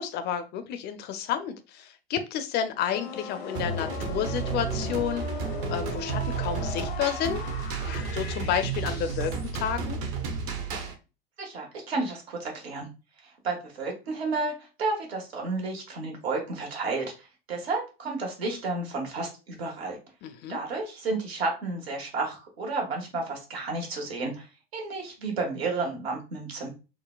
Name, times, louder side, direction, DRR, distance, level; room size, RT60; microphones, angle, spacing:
voice 1, 0.0-7.4 7.8-10.0 20.2-20.6, left 9 dB, 35° left, 0.5 m, -31 dB
sound 1, 2.8-9.5, left 4 dB, 80° left, 0.9 m, -39 dB
sound 2, 3.6-10.9, right 5 dB, 50° right, 0.8 m, -32 dB
voice 2, 11.4-12.9 13.2-20.0 20.5-24.5 24.7-26.7, right 3 dB, 75° right, 1.2 m, -32 dB
3.8 x 2.1 x 2.3 m
hypercardioid pair, 85°, 31 cm